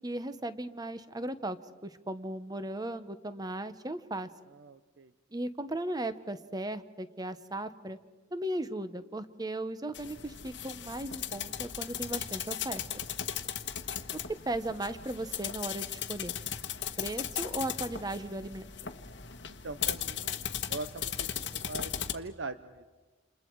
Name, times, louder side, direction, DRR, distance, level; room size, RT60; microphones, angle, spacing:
voice 1, 0.0-4.3 5.3-8.0 8.3-12.8 14.1-16.4 17.0-18.7, right 1 dB, 20° right, 12 dB, 1.0 m, -37 dB
voice 2, 4.5-5.1 13.2-13.4 19.5-22.8, right 3 dB, 65° right, 11 dB, 0.7 m, -42 dB
sound 1, 9.9-22.1, left 9 dB, 60° left, 1.2 m, -37 dB
28.5 x 28.5 x 4.7 m, 1.3 s
head